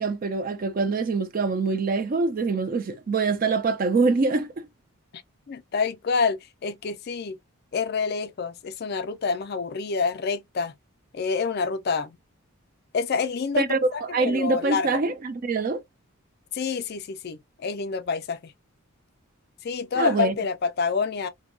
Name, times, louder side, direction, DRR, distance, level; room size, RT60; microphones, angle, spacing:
voice 1, 0.0-4.7 13.6-15.8 20.0-20.3, right 3 dB, 40° right, 0.3 m, -24 dB
voice 2, 5.5-7.4 7.7-10.7 11.1-12.2 12.9-13.7 13.9-14.9 16.5-18.5 19.6-21.3, left 5 dB, 45° left, 0.4 m, -27 dB
2.7 x 2.2 x 2.5 m
head